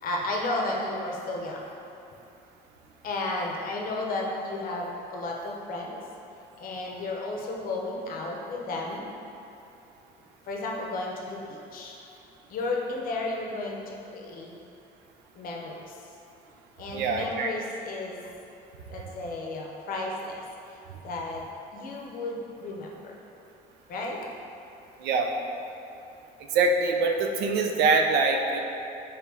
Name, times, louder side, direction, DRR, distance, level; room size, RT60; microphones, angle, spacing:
voice 1, 0.0-1.7 3.0-6.0 6.6-9.1 10.5-12.0 12.5-14.6 15.3-16.0 16.8-18.3 18.9-21.5 21.7-23.2 23.9-24.2, left 2 dB, 60° left, -1 dB, 0.7 m, -33 dB
voice 2, 16.9-17.5 25.0-25.3 26.5-28.6, right 3 dB, 80° right, 3 dB, 0.4 m, -24 dB
4.7 x 3.1 x 2.7 m, 2.8 s
cardioid pair, 110°, 17 cm